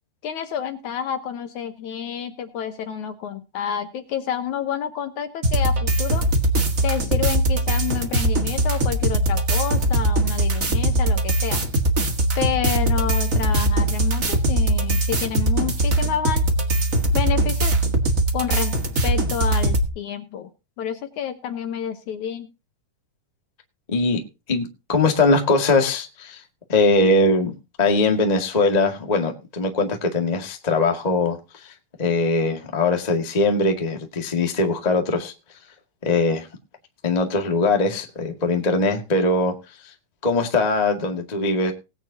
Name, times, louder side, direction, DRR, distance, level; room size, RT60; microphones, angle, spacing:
voice 1, 0.2-6.2 6.8-11.6 12.4-16.4 17.1-17.7 18.3-18.7 19.0-20.5 20.8-22.5, left 8 dB, 65° left, 2.1 m, -29 dB
sound 1, 5.4-19.9, right 1 dB, 45° right, 1.1 m, -21 dB
voice 2, 23.9-24.2 24.5-26.4 26.7-27.5 27.8-31.7 32.0-35.3 36.0-36.5 37.0-39.5 40.2-41.7, left 3 dB, 30° left, 0.7 m, -21 dB
19.5 x 9.6 x 2.8 m
omnidirectional pair, 4.3 m